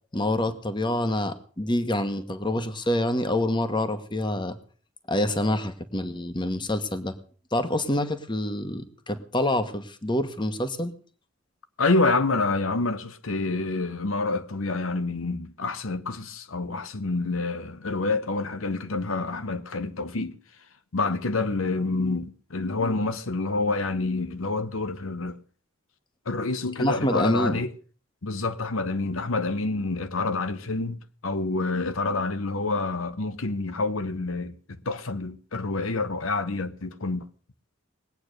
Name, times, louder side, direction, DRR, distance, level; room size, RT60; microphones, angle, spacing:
voice 1, 0.1-4.6 5.1-7.1 7.5-10.9 26.8-27.6, left 1 dB, 25° left, 1.3 m, -26 dB
voice 2, 11.8-20.4 20.9-25.4 26.3-27.7 28.2-34.6 34.9-37.2, left 3 dB, 85° left, 1.0 m, -27 dB
20.5 x 8.9 x 6.6 m
head